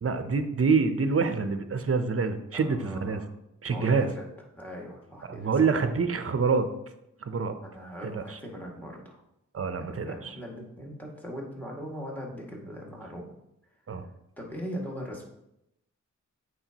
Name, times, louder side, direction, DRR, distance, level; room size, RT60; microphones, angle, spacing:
voice 1, 0.0-3.2 3.6-4.1 5.3-6.7 7.2-7.5 8.0-8.4 9.5-10.3 13.9-14.0, right 4 dB, 45° right, 9 dB, 0.7 m, -26 dB
voice 2, 2.5-3.3 3.7-4.3 4.6-5.9 7.6-9.2 9.9-13.3 14.4-15.2, equal, 5° left, -1 dB, 2.0 m, -40 dB
8.8 x 4.7 x 2.9 m, 0.83 s
cardioid pair, 55°, 31 cm